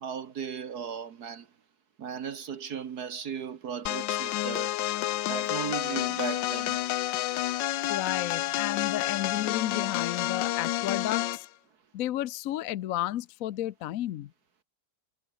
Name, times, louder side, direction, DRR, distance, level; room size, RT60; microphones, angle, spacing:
voice 1, 0.0-1.5 2.0-4.8 5.3-6.8, right 7 dB, 60° right, 1.7 m, -36 dB
sound 1, 3.9-11.5, left 14 dB, 85° left, 1.4 m, -30 dB
voice 2, 7.9-11.5 11.9-14.3, left 13 dB, 65° left, 0.9 m, -32 dB
omnidirectional pair, 1.9 m